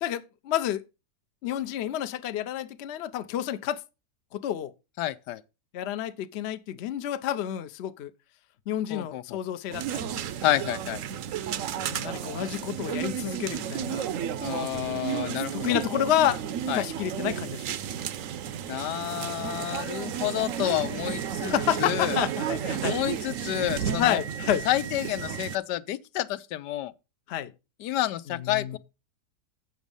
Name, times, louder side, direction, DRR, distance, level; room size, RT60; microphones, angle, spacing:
voice 1, 0.0-0.8 1.4-3.8 4.3-4.7 5.7-8.1 8.7-10.2 11.7-14.0 15.2-16.4 16.7-17.8 21.5-23.0 24.0-24.6 27.3-27.5 28.3-28.8, left 11 dB, 60° left, 0.7 m, -29 dB
voice 2, 5.0-5.4 8.9-9.4 10.4-11.0 14.4-15.8 16.7-16.9 18.7-21.5 21.8-22.2 22.8-24.2 24.7-26.9 27.8-28.8, left 14 dB, 90° left, 1.2 m, -29 dB
sound 1, 9.7-25.6, right 9 dB, 65° right, 0.9 m, -32 dB
8.0 x 6.2 x 5.3 m
omnidirectional pair, 1.8 m